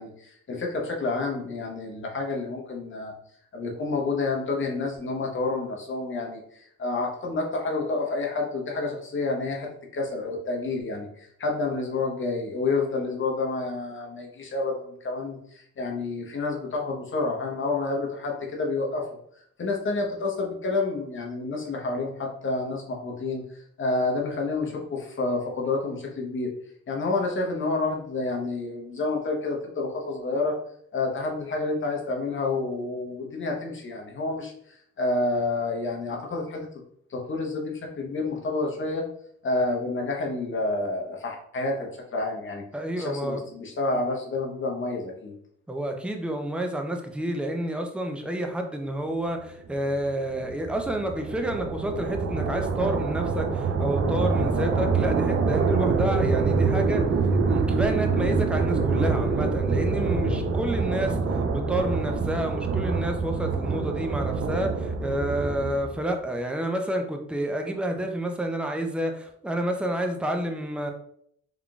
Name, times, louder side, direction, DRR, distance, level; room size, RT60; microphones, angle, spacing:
voice 1, 0.0-3.1 3.5-19.0 19.6-23.4 23.8-26.5 26.9-30.6 30.9-36.7 37.1-39.0 39.4-42.6 42.9-45.3 60.2-60.4, left 3 dB, 40° left, 0 dB, 1.0 m, -29 dB
voice 2, 42.7-43.4 43.9-44.0 45.7-57.0 57.5-61.2 61.5-70.9, right 1 dB, 5° right, 4 dB, 0.5 m, -29 dB
sound 1, 49.8-66.0, right 4 dB, 45° right, 0.6 m, -25 dB
3.7 x 3.6 x 2.3 m, 0.68 s
cardioid pair, 90°, 30 cm